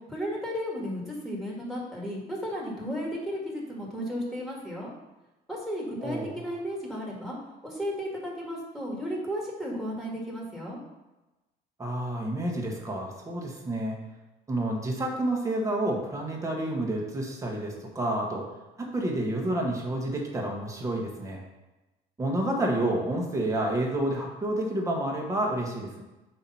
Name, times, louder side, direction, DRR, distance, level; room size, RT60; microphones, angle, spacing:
voice 1, 0.1-4.9 5.5-7.4 7.6-10.8, equal, ahead, -3 dB, 2.1 m, -34 dB
voice 2, 6.0-6.4 11.8-14.0 14.5-18.4 18.8-21.4 22.2-26.0, right 1 dB, 20° right, -1 dB, 1.5 m, -29 dB
8.4 x 3.1 x 5.6 m, 1.1 s
cardioid pair, 110°, 17 cm